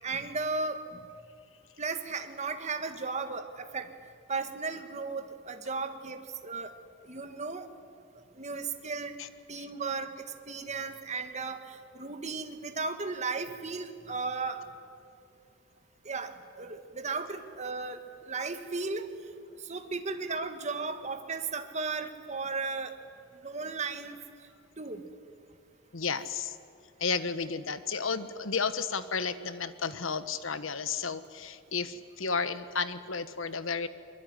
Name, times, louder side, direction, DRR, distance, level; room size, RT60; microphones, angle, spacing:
voice 1, 0.0-0.8 1.8-3.9 4.3-6.7 7.1-7.7 8.4-9.1 9.5-10.1 10.5-14.6 16.1-18.0 18.3-19.1 19.7-22.9 23.4-24.2 24.8-25.0, right 4 dB, 35° right, 7 dB, 1.8 m, -35 dB
voice 2, 25.9-26.6 27.0-33.9, left 5 dB, 85° left, 12 dB, 1.3 m, -32 dB
23.0 x 23.0 x 9.8 m, 2.4 s
head